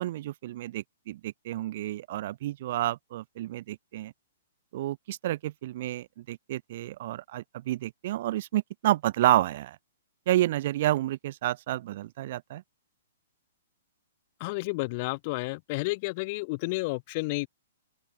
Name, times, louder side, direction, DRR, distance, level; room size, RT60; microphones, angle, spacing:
voice 1, 0.0-4.1 4.7-9.8 10.3-12.6, right 14 dB, 45° right, 0.8 m, -30 dB
voice 2, 14.4-17.5, left 25 dB, 40° left, 1.7 m, -31 dB
open air
figure-of-eight pair, 115°, 0 cm